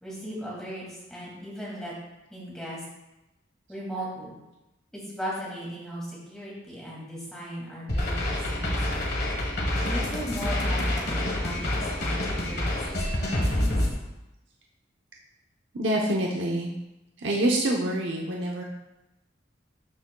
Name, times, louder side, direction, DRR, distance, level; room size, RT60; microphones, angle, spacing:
voice 1, 0.0-1.9 2.3-2.8 3.7-4.3 4.9-9.1 9.8-13.8, equal, 5° left, -6 dB, 2.4 m, -37 dB
sound 1, 7.9-13.9, left 1 dB, 55° left, 1.4 m, -27 dB
voice 2, 15.7-16.7 17.2-18.6, right 1 dB, 75° right, -2 dB, 0.9 m, -26 dB
12.5 x 6.2 x 2.3 m, 0.96 s
head